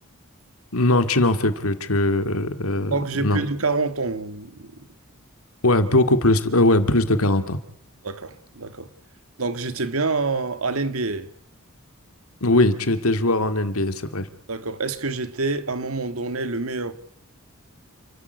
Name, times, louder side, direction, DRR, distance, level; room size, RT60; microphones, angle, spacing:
voice 1, 0.7-2.9 3.2-3.4 5.6-7.6 12.4-14.3, left 2 dB, 80° left, 2.3 m, -20 dB
voice 2, 2.9-4.7 8.0-8.9 9.4-11.3 14.5-16.9, right 3 dB, 75° right, 1.8 m, -27 dB
29.5 x 14.5 x 8.1 m
head